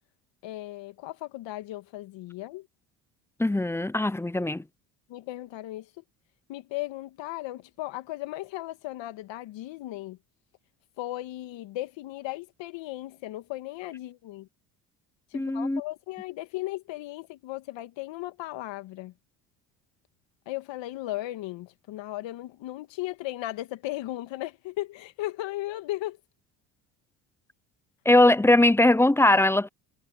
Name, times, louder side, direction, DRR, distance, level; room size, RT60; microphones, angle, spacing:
voice 1, 0.4-2.7 5.1-6.0 6.5-10.2 11.0-14.5 15.3-19.1 20.5-26.2, left 16 dB, 65° left, 2.0 m, -36 dB
voice 2, 3.4-4.6 15.3-15.8 28.1-29.7, left 1 dB, 5° left, 0.6 m, -20 dB
supercardioid pair, 75°, 48 cm